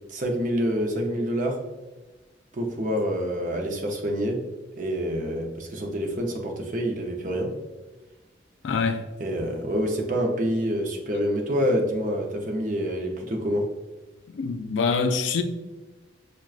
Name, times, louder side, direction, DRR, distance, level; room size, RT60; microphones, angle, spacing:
voice 1, 0.1-1.6 2.5-4.4 4.7-7.5 9.2-13.7, equal, 45° right, 0.6 m, -27 dB
voice 2, 8.6-9.0 14.3-15.4, left 5 dB, 70° left, 0.4 m, -25 dB
6.0 x 2.2 x 2.3 m
head